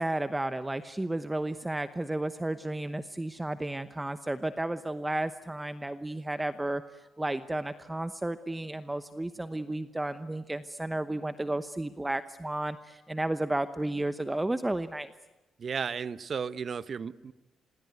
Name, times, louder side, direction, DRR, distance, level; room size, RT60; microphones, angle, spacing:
voice 1, 0.0-15.1, right 1 dB, 10° right, 11 dB, 0.9 m, -33 dB
voice 2, 15.6-17.3, right 6 dB, 45° right, 15 dB, 0.9 m, -34 dB
26.5 x 22.0 x 9.4 m, 1.1 s
cardioid pair, 90°, 0 cm